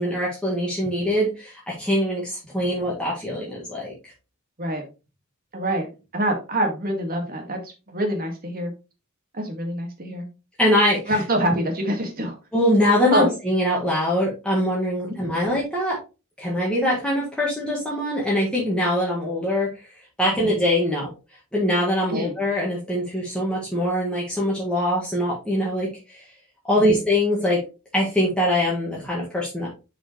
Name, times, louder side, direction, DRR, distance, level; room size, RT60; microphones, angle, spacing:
voice 1, 0.0-3.9 10.6-11.2 12.5-16.0 16.4-19.9 20.2-21.1 21.5-26.3 26.6-27.6 27.9-29.7, equal, 5° left, -6 dB, 1.8 m, -23 dB
voice 2, 5.5-5.9 6.1-7.6 7.9-8.7 9.3-10.3 11.1-12.4 13.1-13.3 15.1-15.2 20.4-20.6 22.1-22.4 26.9-27.0, right 1 dB, 45° right, 3 dB, 2.0 m, -25 dB
7.0 x 5.3 x 3.1 m, 0.30 s
head